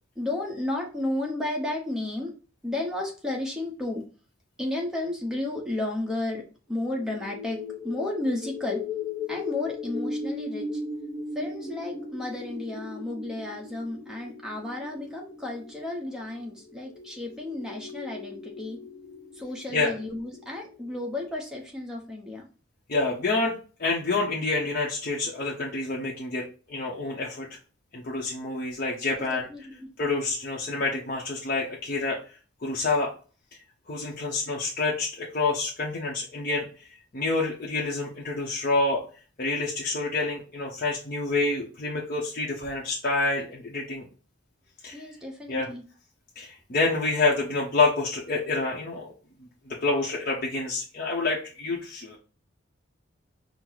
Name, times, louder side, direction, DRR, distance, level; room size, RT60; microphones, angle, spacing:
voice 1, 0.2-2.3 2.6-4.0 4.6-8.8 9.3-10.7 11.3-18.8 19.4-22.5 29.5-29.9 44.9-45.8, left 2 dB, 5° right, -1 dB, 0.9 m, -32 dB
sound 1, 6.8-21.2, left 3 dB, 20° left, 1.1 m, -38 dB
voice 2, 22.9-23.5 23.8-27.6 27.9-29.5 30.0-32.2 32.6-33.1 33.9-36.7 37.1-39.0 39.4-44.1 44.8-45.0 45.5-45.7 46.4-49.1 49.7-52.2, left 3 dB, 45° left, -4 dB, 0.7 m, -27 dB
4.4 x 2.0 x 3.9 m, 0.36 s
head